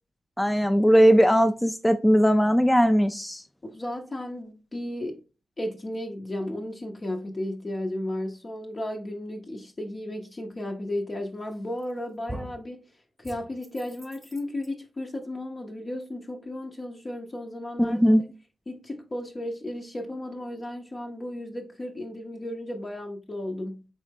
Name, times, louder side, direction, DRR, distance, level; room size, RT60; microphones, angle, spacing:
voice 1, 0.4-3.4 17.8-18.2, equal, 10° left, 0.3 m, -19 dB
voice 2, 3.6-5.2 5.6-12.8 13.2-18.0 18.7-23.9, left 1 dB, 40° left, 0.7 m, -34 dB
sound 1, 11.5-11.9 12.3-12.7 13.2-14.7, right 1 dB, 15° right, 0.8 m, -42 dB
3.8 x 3.1 x 3.4 m
cardioid pair, 45°, 0 cm